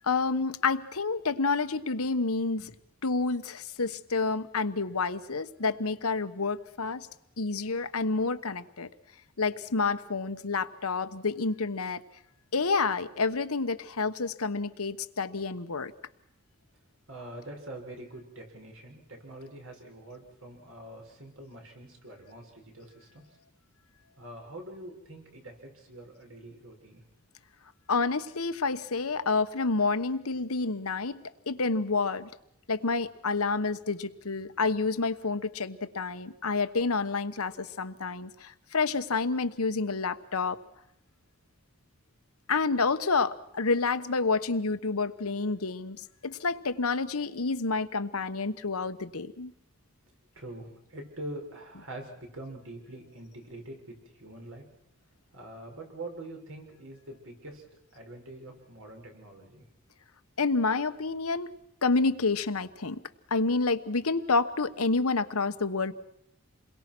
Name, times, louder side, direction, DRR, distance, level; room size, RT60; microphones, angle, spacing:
voice 1, 0.0-2.7 3.0-7.1 7.4-8.9 9.4-12.0 12.5-15.9 27.9-32.3 32.7-40.6 42.5-49.5 51.7-51.8 60.4-61.5 61.8-63.0 63.3-65.9, left 4 dB, 90° left, 10 dB, 1.2 m, -29 dB
voice 2, 17.1-23.2 24.2-27.0 50.3-54.6 55.3-57.6 57.9-59.6, right 1 dB, 70° right, 2 dB, 6.2 m, -44 dB
28.5 x 22.0 x 6.2 m, 0.78 s
head